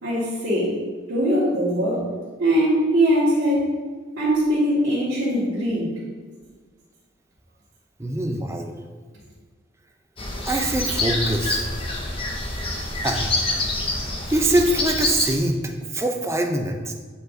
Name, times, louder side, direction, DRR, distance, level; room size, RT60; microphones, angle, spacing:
voice 1, 0.0-0.8 1.1-2.1 2.4-3.7 4.2-5.9, equal, 70° right, -11 dB, 1.9 m, -21 dB
voice 2, 8.0-8.8 10.5-11.7 13.0-13.4 14.3-16.9, right 1 dB, 15° right, 3 dB, 0.5 m, -23 dB
sound 1, 10.2-15.4, left 2 dB, 25° left, 0.8 m, -26 dB
8.9 x 4.6 x 2.6 m, 1.5 s
head